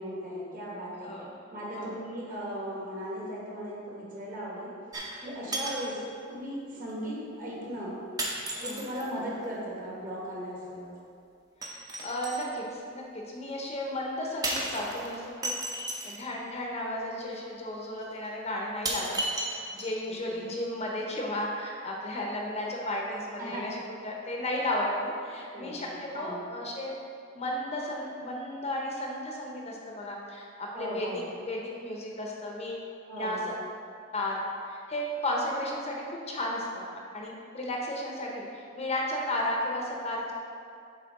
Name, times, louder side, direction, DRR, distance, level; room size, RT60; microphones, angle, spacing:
voice 1, 0.0-1.1 1.5-4.7 5.2-6.0 6.3-7.9 8.6-10.9 20.3-20.4 23.4-23.7 25.5-25.8 26.1-26.4 30.7-31.2 33.1-33.5, equal, 40° right, -6 dB, 1.6 m, -37 dB
sound 1, 4.9-5.2 5.5-5.9 6.9-7.0 8.2-9.1 11.6-12.5 14.4-16.2 17.3-17.4 18.0-18.1 18.8-20.1 20.4-20.5, right 1 dB, 20° right, 0.7 m, -34 dB
voice 2, 11.6-15.5 16.0-19.2 19.7-26.9 27.3-32.9 33.2-33.4 34.1-40.3, left 1 dB, 30° left, -1 dB, 0.7 m, -34 dB
7.4 x 3.3 x 4.7 m, 2.4 s
head